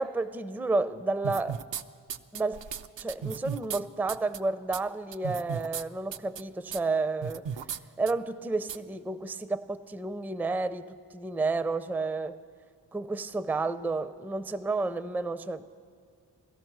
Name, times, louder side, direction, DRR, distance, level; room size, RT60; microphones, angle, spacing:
voice 1, 0.0-1.6 2.3-2.7 3.0-7.5 8.0-12.4 12.9-15.6, right 3 dB, 5° right, 12 dB, 0.4 m, -31 dB
sound 1, 1.2-1.8 2.1-3.8 4.1-4.4 4.7-4.8 5.1-5.8 6.1-6.4 6.7-6.8 7.2-7.8 8.1-8.2 8.7-8.8, right 7 dB, 75° right, 0.5 m, -35 dB
17.0 x 13.5 x 6.0 m, 2.2 s
wide cardioid pair, 50°, 44 cm